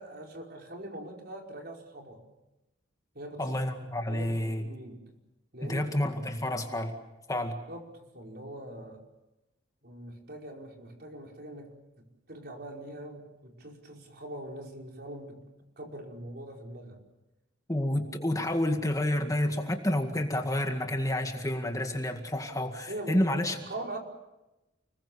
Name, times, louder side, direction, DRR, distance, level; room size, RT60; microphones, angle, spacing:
voice 1, 0.0-2.2 3.1-3.6 3.9-5.1 5.5-5.9 7.4-9.0 9.8-15.5 15.8-17.0 22.9-24.0, right 1 dB, 60° right, 1 dB, 5.1 m, -43 dB
voice 2, 3.4-4.6 5.6-6.9 7.3-7.6 17.7-23.6, left 1 dB, 20° left, 4 dB, 2.0 m, -29 dB
30.0 x 21.0 x 7.1 m, 0.97 s
head